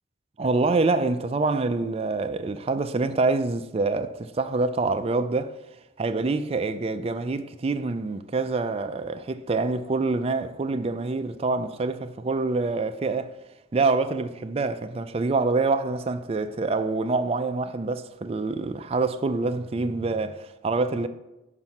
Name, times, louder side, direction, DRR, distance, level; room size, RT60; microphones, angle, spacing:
voice 1, 0.4-5.6 6.0-13.4 13.7-21.1, right 3 dB, 30° right, 0.3 m, -26 dB
5.9 x 5.2 x 5.7 m
head